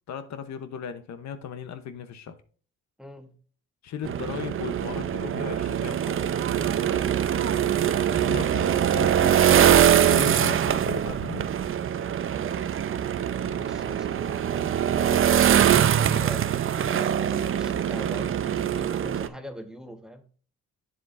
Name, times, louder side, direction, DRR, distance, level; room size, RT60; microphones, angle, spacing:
voice 1, 0.1-2.4 3.8-6.4 8.2-9.7 10.0-11.5, left 8 dB, 65° left, 0.9 m, -37 dB
voice 2, 3.0-3.4 7.3-7.7 13.5-20.2, equal, ahead, 1.2 m, -42 dB
sound 1, 4.0-19.3, right 9 dB, 45° right, 0.6 m, -23 dB
7.7 x 7.6 x 2.5 m
cardioid pair, 90°, 30 cm